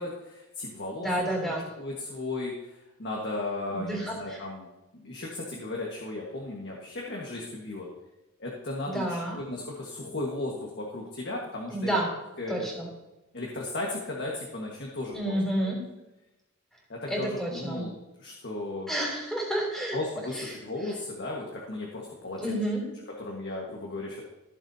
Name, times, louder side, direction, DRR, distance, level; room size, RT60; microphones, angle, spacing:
voice 1, 0.0-1.5 1.8-4.7 4.9-7.9 8.4-11.9 12.4-12.7 13.3-15.4 15.6-15.7 16.9-17.9 18.2-18.9 19.9-22.6 23.2-24.2, left 2 dB, 55° left, -2 dB, 1.6 m, -35 dB
voice 2, 1.0-1.7 3.7-4.4 8.8-9.4 11.7-12.2 12.5-12.9 15.1-15.9 17.1-17.9 18.9-20.0 20.3-20.5 22.4-22.9, right 1 dB, ahead, -2 dB, 3.2 m, -30 dB
15.0 x 7.2 x 2.8 m, 0.99 s
head